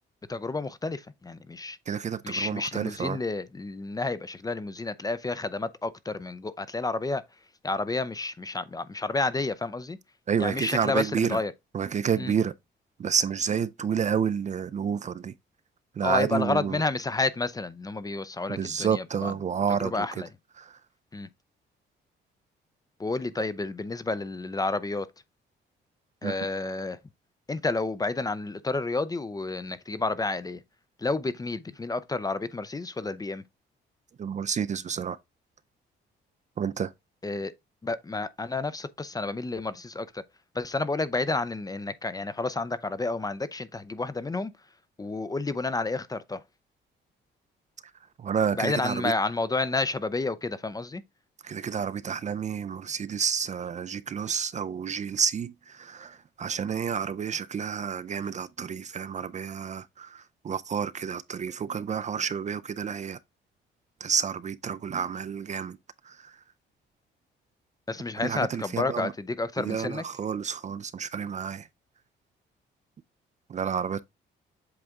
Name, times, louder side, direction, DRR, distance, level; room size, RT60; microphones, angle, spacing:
voice 1, 0.3-1.8 2.2-7.2 7.6-10.0 10.4-11.5 12.2-12.4 16.0-19.3 19.8-20.3 21.1-21.3 23.0-25.1 26.2-27.0 27.5-30.6 31.0-33.4 37.2-37.5 37.8-40.2 40.5-44.5 45.0-46.4 48.6-51.0 67.9-70.0, left 3 dB, 20° left, 0.5 m, -30 dB
voice 2, 1.9-3.2 10.3-11.4 11.7-12.5 13.0-15.3 16.0-16.8 18.5-20.1 20.6-20.7 26.2-26.3 34.2-35.2 36.6-36.9 48.2-49.1 51.4-63.2 64.0-65.8 66.1-66.4 68.2-69.1 69.6-71.7 73.5-74.0, right 7 dB, 35° right, 0.4 m, -30 dB
7.8 x 3.4 x 3.6 m
cardioid pair, 90°, 20 cm